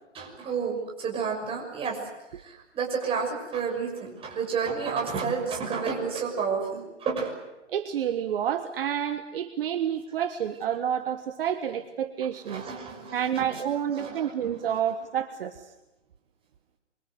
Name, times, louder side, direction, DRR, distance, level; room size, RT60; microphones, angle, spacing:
voice 1, 0.1-2.0 2.3-7.4 12.5-14.2 14.4-14.5, right 5 dB, 15° right, 0 dB, 6.3 m, -31 dB
voice 2, 7.7-12.7 13.1-15.7, right 9 dB, 50° right, 9 dB, 1.5 m, -29 dB
27.0 x 24.0 x 7.9 m, 1.0 s
hypercardioid pair, 140°, 37 cm